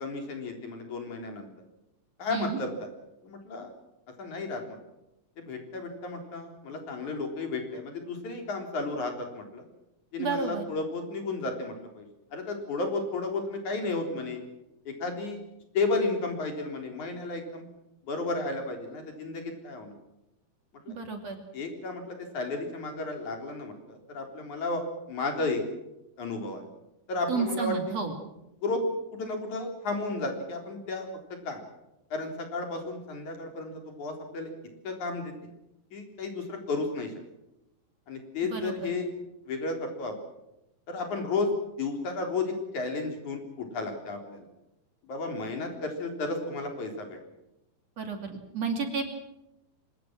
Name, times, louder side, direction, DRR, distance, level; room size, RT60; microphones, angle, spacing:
voice 1, 0.0-1.5 2.2-2.9 3.2-3.7 4.2-4.8 5.4-9.6 10.1-12.1 12.3-14.4 14.9-15.4 15.7-17.7 18.0-19.9 20.9-21.0 21.5-24.8 25.1-25.6 26.2-26.6 27.1-27.8 28.6-28.8 29.1-31.6 32.1-34.5 34.8-35.3 35.9-37.1 38.1-39.1 39.5-40.1 40.9-41.5 41.8-44.5 45.1-47.2, left 3 dB, 55° left, 4 dB, 5.1 m, -33 dB
voice 2, 10.2-10.7 20.9-21.4 27.3-28.2 38.5-38.9 48.0-49.1, right 5 dB, 45° right, 5 dB, 3.5 m, -31 dB
25.5 x 21.5 x 6.1 m, 0.90 s
omnidirectional pair, 4.2 m